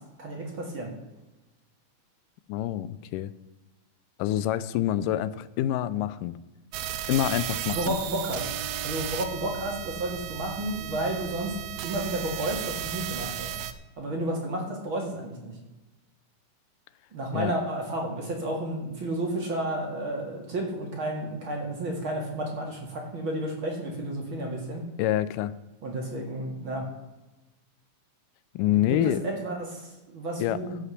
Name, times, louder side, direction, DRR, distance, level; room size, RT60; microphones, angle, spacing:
voice 1, 0.2-0.9 7.6-8.5 8.8-11.6 11.8-13.5 14.0-15.5 17.1-24.8 25.8-26.9 28.7-30.8, right 1 dB, 40° right, 0 dB, 2.6 m, -32 dB
voice 2, 2.5-3.3 4.2-6.4 7.1-8.0 17.3-17.5 25.0-25.5 28.6-29.2 30.4-30.6, left 12 dB, 85° left, 15 dB, 2.2 m, -26 dB
sound 1, 6.7-13.7, right 10 dB, 75° right, 1.9 m, -34 dB
11.5 x 8.2 x 6.9 m, 1.1 s
omnidirectional pair, 3.8 m